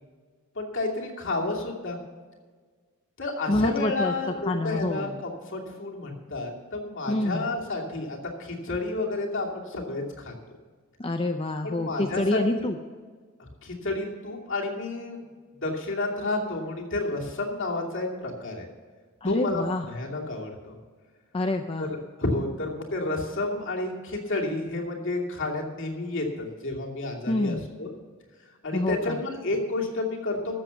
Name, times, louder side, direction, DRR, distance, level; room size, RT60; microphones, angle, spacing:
voice 1, 0.5-2.0 3.2-10.3 11.6-12.7 13.6-15.2 15.6-18.7 19.2-20.7 21.8-27.9 28.6-30.6, left 2 dB, 60° left, -1 dB, 2.7 m, -31 dB
voice 2, 3.5-4.1 4.5-5.2 7.1-7.5 11.0-12.8 19.2-19.9 21.3-21.9 27.3-27.6 28.7-29.2, left 2 dB, 25° left, 4 dB, 0.6 m, -27 dB
13.5 x 7.6 x 7.0 m, 1.5 s
head